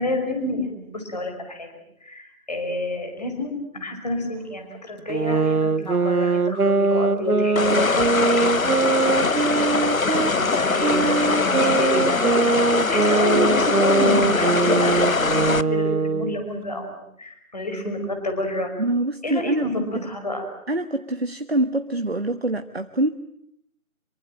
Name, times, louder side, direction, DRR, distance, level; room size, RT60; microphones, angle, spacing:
voice 1, 0.0-1.7 2.0-9.4 10.2-18.7 19.2-20.5, left 1 dB, 30° left, 4 dB, 5.5 m, -29 dB
sound 1, 5.1-10.3 10.8-16.4, right 4 dB, 85° right, 1.2 m, -22 dB
sound 2, 7.6-15.6, left 4 dB, 65° left, 1.0 m, -22 dB
voice 2, 18.8-19.7 20.7-23.1, right 2 dB, 45° right, 8 dB, 1.3 m, -24 dB
26.5 x 24.0 x 8.9 m, 0.72 s
figure-of-eight pair, 170°, 43 cm